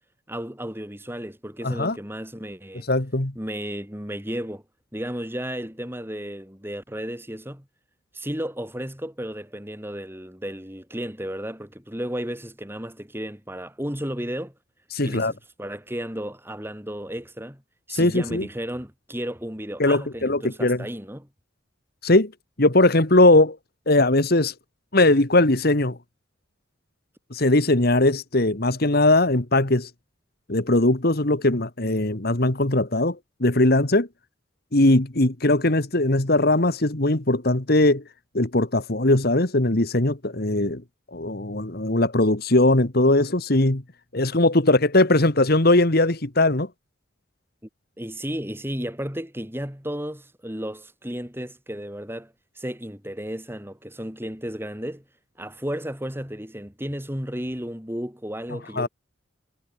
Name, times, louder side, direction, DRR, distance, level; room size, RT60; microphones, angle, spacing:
voice 1, 0.3-2.9 3.3-4.6 4.9-7.7 8.1-14.5 15.0-17.6 17.9-21.3 48.0-55.0 55.4-58.9, equal, 10° right, 8.0 m, -33 dB
voice 2, 1.6-2.0 2.9-3.3 14.9-15.3 17.9-18.5 19.8-20.8 22.0-22.3 22.6-23.6 23.9-24.5 24.9-26.0 27.3-29.9 30.5-34.1 34.7-38.0 38.3-40.8 41.1-43.8 44.1-46.7 58.8-58.9, left 2 dB, 55° left, 2.0 m, -20 dB
head